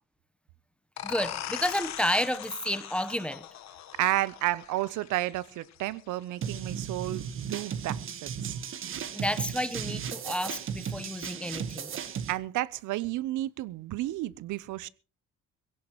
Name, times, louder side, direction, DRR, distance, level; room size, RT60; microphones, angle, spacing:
sound 1, 1.0-6.4, left 11 dB, 60° left, 1.3 m, -40 dB
voice 1, 1.0-3.5 9.1-11.9, equal, 5° left, 0.9 m, -31 dB
voice 2, 4.0-8.5 12.3-14.9, right 16 dB, 80° right, 0.7 m, -31 dB
sound 2, 6.4-12.3, right 8 dB, 45° right, 1.3 m, -35 dB
21.5 x 17.0 x 3.0 m
cardioid pair, 155°, 30 cm